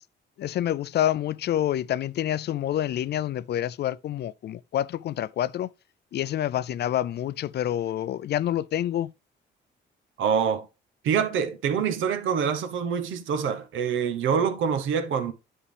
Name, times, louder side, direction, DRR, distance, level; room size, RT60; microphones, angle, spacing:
voice 1, 0.4-5.7 6.1-9.1, left 11 dB, 55° left, 0.4 m, -27 dB
voice 2, 10.2-10.7 11.0-15.3, right 7 dB, 80° right, 1.1 m, -25 dB
9.9 x 5.6 x 3.4 m
cardioid pair, 90°, 20 cm